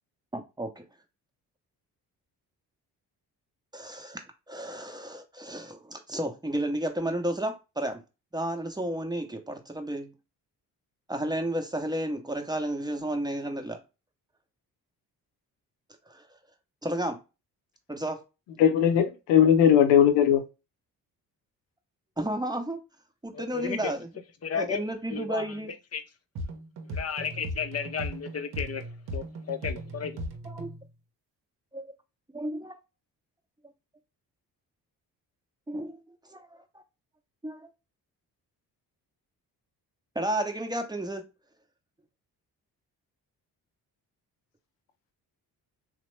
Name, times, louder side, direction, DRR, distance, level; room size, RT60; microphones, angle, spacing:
voice 1, 0.3-0.8 3.7-4.2 4.5-8.0 8.3-10.1 11.1-13.8 16.1-16.2 16.8-17.2 17.9-18.2 22.2-22.8 23.2-24.1 24.5-25.7 30.4-30.7 31.7-31.9 32.3-32.7 35.7-36.0 36.3-36.6 37.4-37.7 40.1-41.3, right 1 dB, 10° right, 0.7 m, -32 dB
voice 2, 18.6-20.4, left 9 dB, 85° left, 0.6 m, -19 dB
voice 3, 23.3-23.9 24.4-24.8 25.1-25.4 25.9-26.0 26.9-30.2, left 7 dB, 35° left, 0.6 m, -33 dB
sound 1, 26.4-30.9, equal, 60° right, 0.7 m, -37 dB
2.9 x 2.1 x 3.1 m
supercardioid pair, 50°, 42 cm